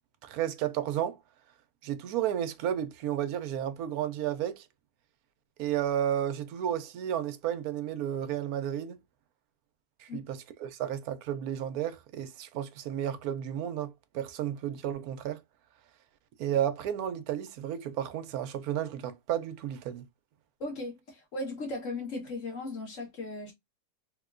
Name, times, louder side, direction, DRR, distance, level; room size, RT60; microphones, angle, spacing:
voice 1, 0.2-1.2 1.8-4.6 5.6-9.0 10.0-15.4 16.4-20.1, right 10 dB, 75° right, 1.0 m, -32 dB
voice 2, 20.6-23.5, left 2 dB, 55° left, 1.7 m, -37 dB
3.5 x 2.9 x 2.4 m
omnidirectional pair, 1.7 m